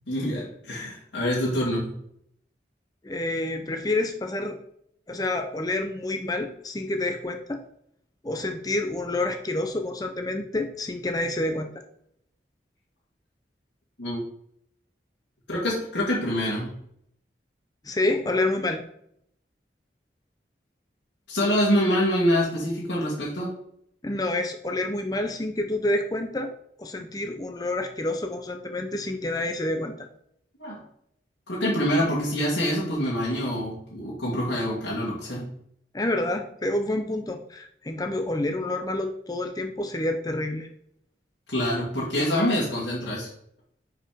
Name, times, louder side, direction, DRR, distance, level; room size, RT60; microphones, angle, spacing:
voice 1, 0.1-1.9 14.0-14.2 15.5-16.7 21.3-23.5 30.6-30.8 31.5-35.5 41.5-43.3, equal, 85° left, -7 dB, 2.1 m, -26 dB
voice 2, 3.0-4.6 5.1-7.6 8.2-11.7 17.8-18.8 24.0-26.5 26.8-30.1 35.9-40.7, left 2 dB, 20° left, 6 dB, 0.6 m, -28 dB
5.9 x 4.8 x 5.0 m, 0.70 s
head